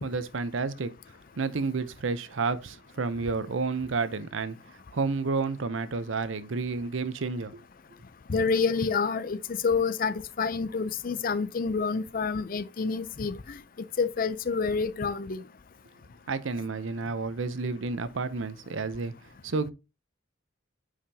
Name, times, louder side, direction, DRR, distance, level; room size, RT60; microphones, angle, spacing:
voice 1, 0.0-0.9 1.4-4.6 4.9-7.6 16.3-19.1 19.4-19.7, right 4 dB, 75° right, 0.7 m, -30 dB
voice 2, 8.3-13.6 14.0-15.4, left 5 dB, 45° left, 0.5 m, -28 dB
8.8 x 4.9 x 2.8 m
head